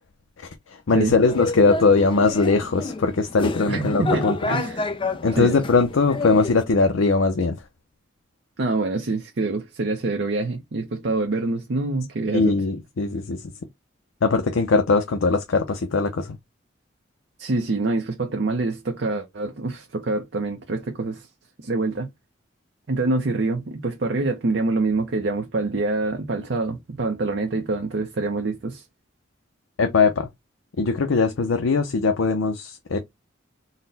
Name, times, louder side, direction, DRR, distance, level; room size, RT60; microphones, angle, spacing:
voice 1, 0.4-4.4 5.2-7.6 12.3-13.5 14.2-16.4 29.8-30.3 30.8-33.0, left 4 dB, 85° left, 0.6 m, -20 dB
sound 1, 1.3-6.6, left 3 dB, 25° left, 0.4 m, -29 dB
voice 2, 3.7-4.8 5.4-5.5 8.6-12.5 17.4-21.3 21.6-22.1 22.9-28.8, right 3 dB, 60° right, 0.6 m, -25 dB
3.9 x 2.1 x 3.9 m
head